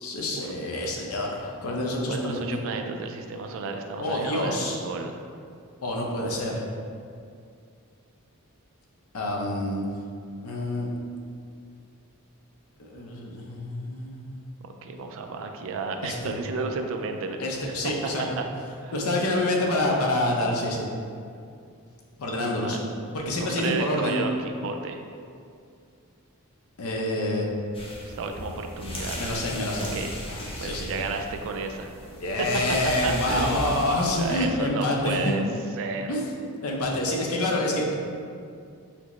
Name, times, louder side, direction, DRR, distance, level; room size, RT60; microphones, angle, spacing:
voice 1, 0.0-2.6 4.0-4.8 5.8-6.6 9.1-9.8 10.4-10.9 12.8-14.4 16.0-16.3 17.4-18.2 18.9-20.9 22.2-22.8 23.1-24.3 26.8-27.5 29.2-29.9 30.3-30.9 32.2-35.4 36.1-36.2 36.6-37.9, left 1 dB, 70° left, -1 dB, 0.6 m, -27 dB
voice 2, 2.1-5.2 14.6-17.4 18.2-18.4 18.8-18.9 22.3-22.8 23.3-25.0 28.0-29.2 29.9-30.1 30.6-31.9 32.4-32.5 32.8-33.8 34.1-35.4 35.8-36.1, right 4 dB, 65° right, 5 dB, 0.3 m, -32 dB
sound 1, 27.7-34.3, equal, 25° left, 0.6 m, -36 dB
5.8 x 2.1 x 3.0 m, 2.4 s
head